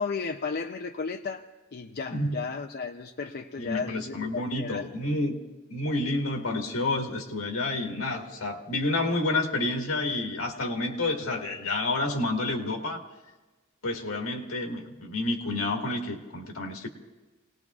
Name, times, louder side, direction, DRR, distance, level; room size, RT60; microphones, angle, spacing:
voice 1, 0.0-1.4 1.7-4.9, left 5 dB, 45° left, 4 dB, 0.5 m, -34 dB
voice 2, 3.6-5.4 5.7-13.0 13.8-16.9, left 2 dB, 75° left, 2 dB, 1.8 m, -29 dB
28.5 x 19.0 x 2.4 m, 1.2 s
head